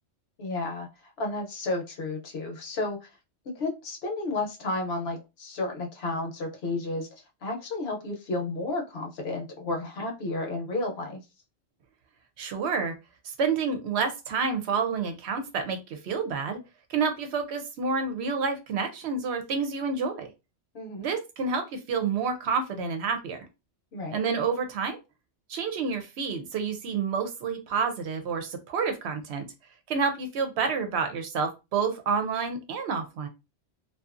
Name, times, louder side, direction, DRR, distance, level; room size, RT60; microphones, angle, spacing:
voice 1, 0.4-0.9 1.2-3.1 3.5-7.1 7.4-11.2 20.7-21.1 23.9-24.2, left 2 dB, 65° left, 2 dB, 0.9 m, -32 dB
voice 2, 12.4-12.9 13.2-16.6 16.9-20.3 21.0-23.5 24.1-25.0 25.5-29.5 29.9-33.3, right 5 dB, 70° right, 6 dB, 0.8 m, -29 dB
2.6 x 2.3 x 2.4 m, 0.26 s
omnidirectional pair, 1.2 m